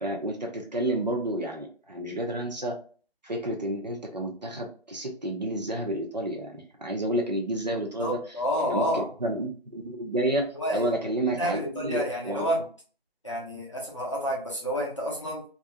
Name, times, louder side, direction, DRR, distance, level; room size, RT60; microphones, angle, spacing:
voice 1, 0.0-2.8 3.2-8.2 8.6-12.4, right 1 dB, 45° right, 1 dB, 0.5 m, -30 dB
voice 2, 8.0-9.1 10.5-10.9 11.3-12.6 13.2-15.4, equal, 30° left, -3 dB, 0.6 m, -29 dB
2.4 x 2.2 x 2.7 m, 0.41 s
figure-of-eight pair, 170°, 30 cm